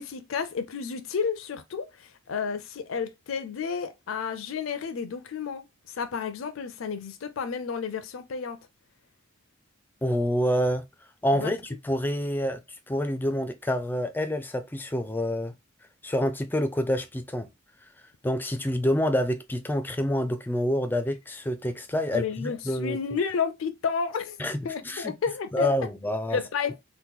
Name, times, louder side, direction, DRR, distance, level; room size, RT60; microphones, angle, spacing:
voice 1, 0.0-8.6 11.3-11.5 22.1-24.4 24.6-25.7 26.3-26.8, left 6 dB, 75° left, 0.4 m, -31 dB
voice 2, 10.0-10.9 11.2-12.6 12.9-15.5 16.0-17.5 18.2-23.0 24.4-25.1 25.5-26.4, equal, 10° left, 0.3 m, -27 dB
2.9 x 2.1 x 3.5 m
head